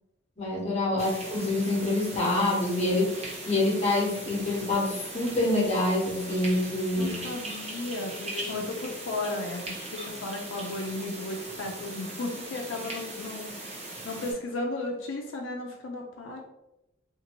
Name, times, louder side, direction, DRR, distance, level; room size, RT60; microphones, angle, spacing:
voice 1, 0.4-7.1, left 2 dB, 35° left, -4 dB, 0.9 m, -26 dB
voice 2, 0.9-1.3 7.0-16.4, left 2 dB, 85° left, 1 dB, 0.4 m, -35 dB
sound 1, 1.0-14.3, right 2 dB, 35° right, 0.7 m, -39 dB
2.6 x 2.5 x 2.9 m, 0.91 s
head